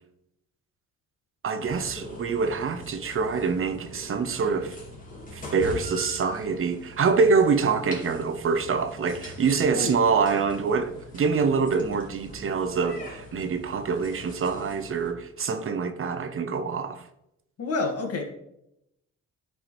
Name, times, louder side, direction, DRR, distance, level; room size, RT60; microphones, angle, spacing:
voice 1, 1.4-4.8 5.3-17.0, right 5 dB, 45° right, 0.7 m, -25 dB
sound 1, 1.6-15.1, left 2 dB, 25° left, 2.2 m, -43 dB
voice 2, 17.6-18.2, left 3 dB, 50° left, 1.6 m, -28 dB
10.5 x 4.9 x 3.1 m
cardioid pair, 90°, 30 cm